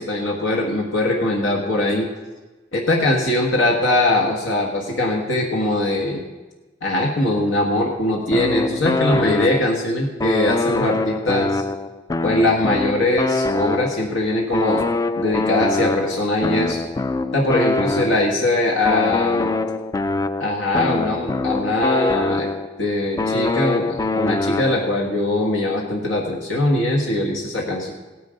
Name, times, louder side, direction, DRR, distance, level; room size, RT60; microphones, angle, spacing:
voice 1, 0.0-2.1 2.7-6.2 6.8-11.6 12.2-14.8 15.2-16.8 17.3-19.5 20.4-22.5 22.8-27.9, left 1 dB, 90° left, -1 dB, 1.6 m, -21 dB
sound 1, 8.3-9.9 10.2-14.2 14.5-18.4 18.8-22.8 23.2-25.0, left 3 dB, 20° left, 0.3 m, -24 dB
16.5 x 9.5 x 5.2 m, 1.2 s
head